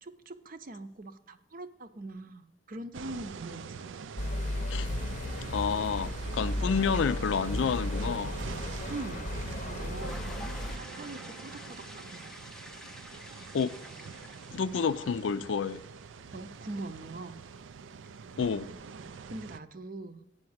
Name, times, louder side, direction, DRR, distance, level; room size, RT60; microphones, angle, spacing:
voice 1, 0.0-3.8 8.9-10.2 10.7-12.3 16.3-17.4 19.3-20.2, right 2 dB, 45° right, 0.7 m, -42 dB
sound 1, 2.9-19.6, right 5 dB, 85° right, 0.4 m, -44 dB
sound 2, 4.2-10.8, left 1 dB, 40° left, 0.7 m, -35 dB
voice 2, 5.5-8.4 13.5-13.8 14.5-15.8 18.4-18.7, left 6 dB, 80° left, 0.4 m, -29 dB
sound 3, 9.8-17.6, equal, 5° left, 0.5 m, -49 dB
8.5 x 5.7 x 7.9 m
head